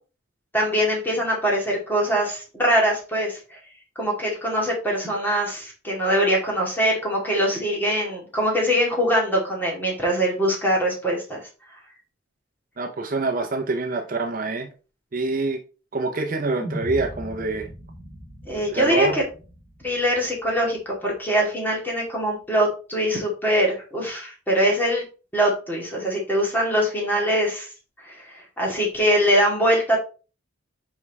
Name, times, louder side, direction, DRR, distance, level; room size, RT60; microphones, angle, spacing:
voice 1, 0.5-3.6 4.0-11.4 18.5-19.2 19.8-25.0 25.3-27.7 28.0-30.0, equal, 10° left, 2.2 m, -23 dB
voice 2, 12.8-14.7 15.1-15.6 15.9-17.7 18.7-19.2, right 3 dB, 45° right, 0.6 m, -25 dB
sound 1, 16.6-20.9, equal, 50° left, 2.7 m, -39 dB
5.4 x 4.7 x 4.1 m
head